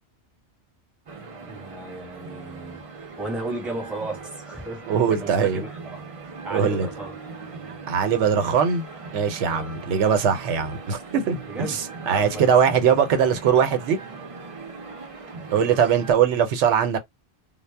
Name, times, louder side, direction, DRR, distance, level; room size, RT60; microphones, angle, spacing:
sound 1, 1.1-16.1, right 4 dB, 45° right, 0.5 m, -40 dB
voice 1, 1.4-6.0 6.4-7.2 9.5-9.7 11.5-12.5 15.5-15.8, right 2 dB, ahead, 0.8 m, -35 dB
voice 2, 4.9-5.6 6.5-6.9 7.9-8.9 9.1-14.0 15.5-17.0, right 7 dB, 85° right, 0.9 m, -21 dB
2.0 x 2.0 x 3.3 m
omnidirectional pair, 1.2 m